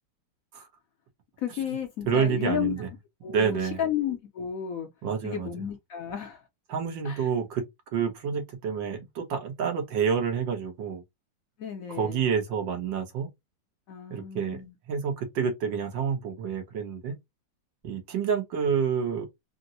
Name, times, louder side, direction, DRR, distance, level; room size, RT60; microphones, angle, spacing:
voice 1, 1.4-2.7 3.2-4.9 5.2-6.4 7.0-7.3 11.6-12.2 13.9-14.7, left 9 dB, 65° left, 0.9 m, -32 dB
voice 2, 2.1-2.9 3.3-3.8 5.0-5.5 6.7-7.6 7.9-11.0 11.9-13.3 14.1-14.6 14.9-17.2 17.8-19.3, right 6 dB, 90° right, 1.8 m, -28 dB
4.3 x 2.0 x 2.6 m
omnidirectional pair, 2.0 m